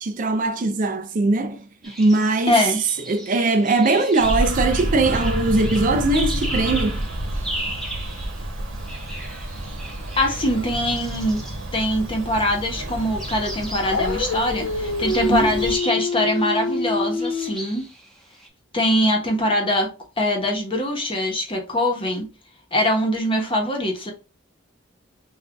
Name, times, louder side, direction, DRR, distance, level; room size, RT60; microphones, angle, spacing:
voice 1, 0.0-1.6 1.8-2.7 3.1-7.1 15.2-15.5, right 2 dB, 40° right, 0.4 m, -21 dB
sound 1, 1.8-12.4 13.1-18.5, right 1 dB, ahead, 1.0 m, -37 dB
voice 2, 2.5-2.8 10.2-11.4 11.7-17.8 18.7-19.9 20.2-22.3 22.7-24.1, left 1 dB, 25° left, 1.0 m, -22 dB
Bird vocalization bird call bird song, 4.2-15.8, right 1 dB, 80° right, 1.1 m, -29 dB
Dog, 13.8-17.6, left 3 dB, 60° left, 0.4 m, -26 dB
5.9 x 2.5 x 2.3 m
head